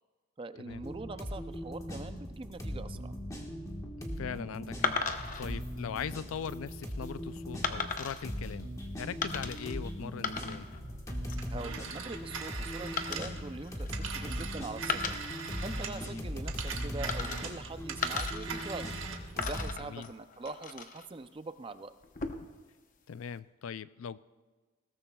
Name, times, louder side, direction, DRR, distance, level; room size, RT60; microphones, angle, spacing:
voice 1, 0.4-3.2 11.5-15.2 15.6-19.0 19.3-21.9, right 3 dB, 25° right, 11 dB, 0.4 m, -43 dB
sound 1, 0.7-19.7, equal, 15° left, 1.4 m, -39 dB
voice 2, 4.2-5.0 5.4-8.7 9.0-10.7 16.1-16.2 19.8-20.1 23.1-24.2, left 7 dB, 75° left, 16 dB, 0.4 m, -40 dB
sound 2, 4.8-5.5 6.2-6.5 7.6-8.2 9.2-9.8 10.1-10.8 11.1-11.5 13.0-14.4 14.8-16.0 17.1-17.7 18.0-19.0 19.4-21.1 22.0-22.6, left 5 dB, 40° left, 0.8 m, -37 dB
Telephone, 11.4-16.1 16.4-19.3, right 6 dB, 65° right, 1.3 m, -41 dB
20.5 x 17.0 x 2.3 m, 1.3 s
head